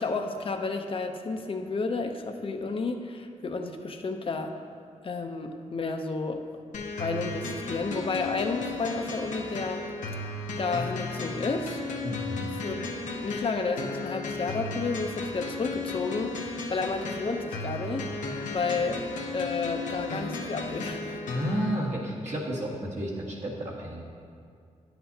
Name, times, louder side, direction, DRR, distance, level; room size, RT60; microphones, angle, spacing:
voice 1, 0.0-4.5 5.0-6.4 7.0-9.8 10.6-11.8 12.5-12.9 13.2-18.1 18.5-19.0 19.3-21.3, left 4 dB, 45° left, 5 dB, 0.6 m, -31 dB
sound 1, 6.7-21.7, left 3 dB, 85° left, 0.8 m, -35 dB
voice 2, 12.0-12.5 21.3-24.0, right 1 dB, 65° right, -4 dB, 1.7 m, -32 dB
10.0 x 7.8 x 2.8 m, 2.3 s
cardioid pair, 75°, 13 cm